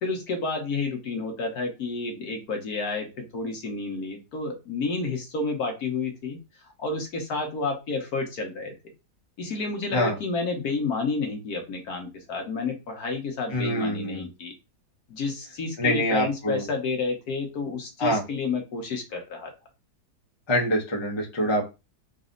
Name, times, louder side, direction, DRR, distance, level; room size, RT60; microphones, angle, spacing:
voice 1, 0.0-6.4 6.8-8.7 9.4-14.5 15.1-19.5, left 3 dB, 70° left, 3 dB, 1.5 m, -30 dB
voice 2, 13.5-14.3 15.8-16.6 18.0-18.2 20.5-21.7, equal, 25° left, 0 dB, 0.7 m, -25 dB
4.0 x 2.6 x 3.8 m, 0.27 s
omnidirectional pair, 1.7 m